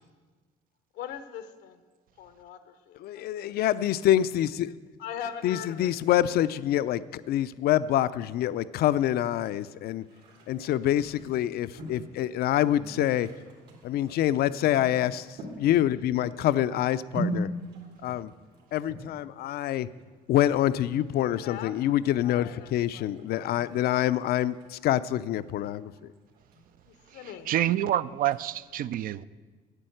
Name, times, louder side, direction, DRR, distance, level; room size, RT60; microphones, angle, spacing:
voice 1, 0.9-1.8 2.2-3.6 5.0-5.9 14.7-14.8 21.3-21.8 22.2-23.1 26.9-27.5, left 9 dB, 85° left, 10 dB, 0.8 m, -41 dB
voice 2, 3.0-4.7 5.4-10.0 10.5-13.3 13.8-15.3 15.6-17.5 18.0-18.3 18.7-19.9 20.3-25.9, left 12 dB, 65° left, 16 dB, 0.5 m, -26 dB
sound 1, 8.9-28.5, right 1 dB, 75° right, 3.1 m, -42 dB
voice 3, 27.5-29.2, right 12 dB, 55° right, 17 dB, 0.4 m, -27 dB
9.9 x 8.4 x 7.8 m, 1.4 s
cardioid pair, 110°, 17 cm